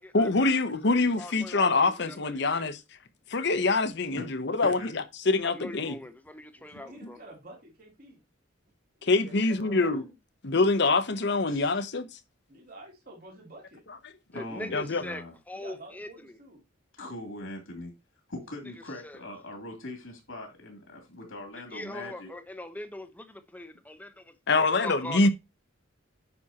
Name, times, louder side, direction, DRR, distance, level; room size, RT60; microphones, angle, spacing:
voice 1, 0.1-2.8 3.3-6.0 9.0-10.0 10.4-12.1 14.7-15.0 24.5-25.3, left 3 dB, 60° left, 0.9 m, -25 dB
voice 2, 1.2-1.7 2.0-2.2 5.5-7.2 14.3-15.2 15.5-16.1 21.7-23.3 23.5-24.1 24.5-25.2, left 1 dB, 10° left, 0.8 m, -40 dB
voice 3, 6.5-8.2 9.0-10.1 12.5-13.8 15.5-16.6 24.1-24.2, right 1 dB, 50° right, 2.8 m, -49 dB
voice 4, 11.4-11.8 14.3-15.4 16.9-17.9 18.3-22.3, left 1 dB, 85° left, 2.6 m, -41 dB
9.6 x 6.0 x 2.9 m
head